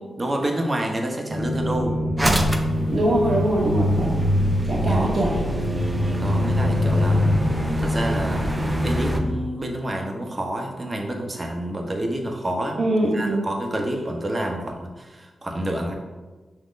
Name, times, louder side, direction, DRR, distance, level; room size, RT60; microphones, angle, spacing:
voice 1, 0.2-1.9 4.8-5.2 6.2-7.2 7.8-8.5 8.8-15.9, right 1 dB, 30° right, 2 dB, 1.1 m, -28 dB
sound 1, 1.3-9.3, equal, 85° right, 1.0 m, -23 dB
sound 2, 2.2-9.2, equal, 15° right, 0.7 m, -30 dB
voice 2, 2.9-4.2 4.6-5.4 12.8-13.5, right 1 dB, 60° right, -4 dB, 1.2 m, -22 dB
6.4 x 2.9 x 5.2 m, 1.3 s
cardioid pair, 65°, 0 cm